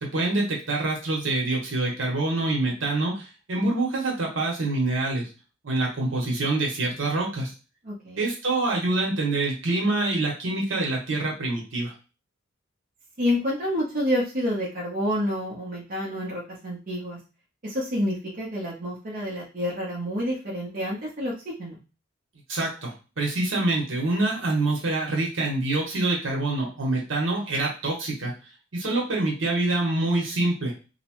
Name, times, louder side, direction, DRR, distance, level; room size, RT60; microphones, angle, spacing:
voice 1, 0.0-5.3 5.6-7.5 8.2-11.9 22.5-28.3 28.7-30.7, right 2 dB, 70° right, -2 dB, 1.1 m, -26 dB
voice 2, 7.8-8.3 13.2-17.2 17.6-21.3 21.6-21.8, equal, 45° right, -5 dB, 0.8 m, -28 dB
2.9 x 2.1 x 2.9 m, 0.32 s
head